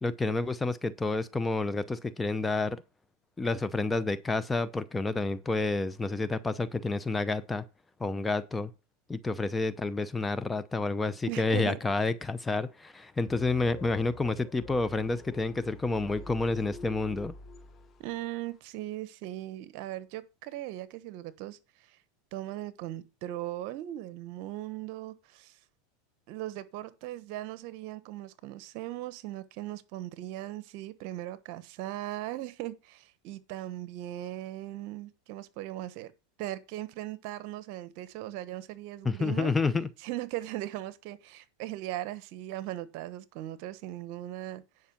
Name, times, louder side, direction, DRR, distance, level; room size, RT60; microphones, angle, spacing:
voice 1, 0.0-2.8 3.4-7.6 8.0-8.7 9.1-17.3 39.0-39.9, left 3 dB, 10° left, 0.7 m, -29 dB
voice 2, 11.3-11.8 18.0-22.0 22.3-25.6 26.3-36.1 36.4-39.5 40.0-44.6, right 14 dB, 60° right, 1.1 m, -38 dB
sound 1, 13.3-18.3, left 4 dB, 25° left, 1.2 m, -47 dB
10.0 x 5.5 x 5.9 m
supercardioid pair, 120°, 0 cm